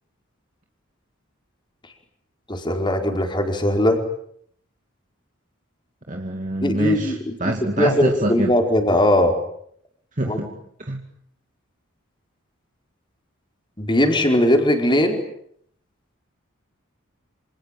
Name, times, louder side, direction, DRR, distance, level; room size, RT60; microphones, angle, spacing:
voice 1, 2.5-4.0 6.6-9.3 10.2-10.5 13.8-15.2, left 1 dB, 20° left, 3 dB, 4.7 m, -20 dB
voice 2, 6.1-8.5 10.2-10.5 10.9-11.0, right 1 dB, 35° right, 2 dB, 2.4 m, -25 dB
28.5 x 27.0 x 7.7 m, 0.68 s
head